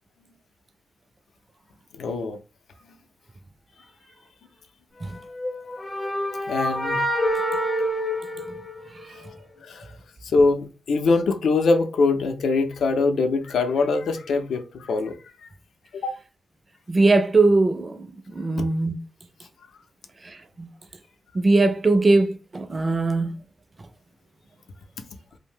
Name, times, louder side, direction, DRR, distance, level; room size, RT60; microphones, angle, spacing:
voice 1, 1.9-2.4 6.5-7.0 9.1-9.2 9.6-10.0 10.2-15.2 15.4-15.5 15.9-16.1, left 3 dB, 80° left, 0.5 m, -23 dB
sound 1, 5.3-9.2, equal, 25° left, 0.5 m, -27 dB
voice 2, 16.9-19.0 20.2-20.7 21.3-23.3, right 3 dB, 30° right, 0.4 m, -21 dB
2.6 x 2.0 x 3.5 m
cardioid pair, 90°, 0 cm